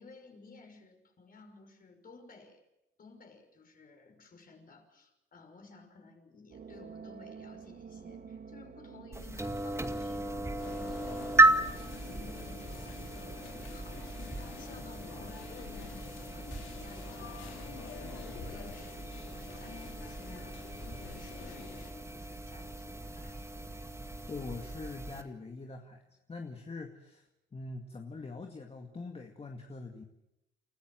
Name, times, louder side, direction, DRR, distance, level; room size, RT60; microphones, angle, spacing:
voice 1, 0.0-2.6 3.0-23.7, left 3 dB, 45° left, 4 dB, 5.8 m, -55 dB
sound 1, 6.5-14.0, right 6 dB, 50° right, 2.0 m, -51 dB
sound 2, 9.1-25.2, right 2 dB, 15° right, 2.1 m, -34 dB
sound 3, 10.6-21.9, left 7 dB, 75° left, 3.5 m, -48 dB
voice 2, 24.3-30.0, left 3 dB, 30° left, 3 dB, 2.2 m, -43 dB
29.0 x 14.5 x 7.7 m, 0.90 s
cardioid pair, 90°, 20 cm